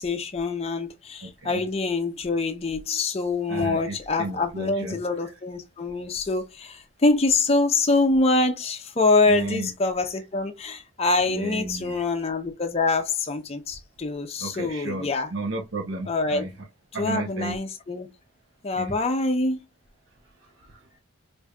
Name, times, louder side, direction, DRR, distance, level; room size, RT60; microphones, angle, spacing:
voice 1, 0.0-15.3 16.1-16.4 17.0-18.1 18.6-19.6, left 3 dB, 30° left, 0.5 m, -25 dB
voice 2, 1.2-1.6 3.5-5.0 9.3-9.7 11.3-12.0 14.4-16.5 16.9-17.5 18.7-18.9 20.7-20.8, right 2 dB, 65° right, 0.7 m, -33 dB
4.9 x 2.5 x 2.2 m
head